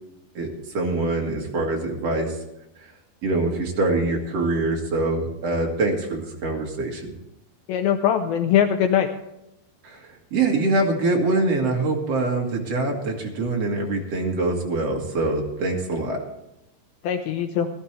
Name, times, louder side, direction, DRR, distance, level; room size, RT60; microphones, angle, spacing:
voice 1, 0.3-2.3 3.2-7.1 9.8-10.0 10.3-16.2, right 2 dB, 50° right, 0 dB, 2.0 m, -24 dB
voice 2, 7.7-9.1 17.0-17.7, left 9 dB, 90° left, 7 dB, 2.1 m, -21 dB
16.0 x 13.0 x 3.3 m, 0.89 s
omnidirectional pair, 5.0 m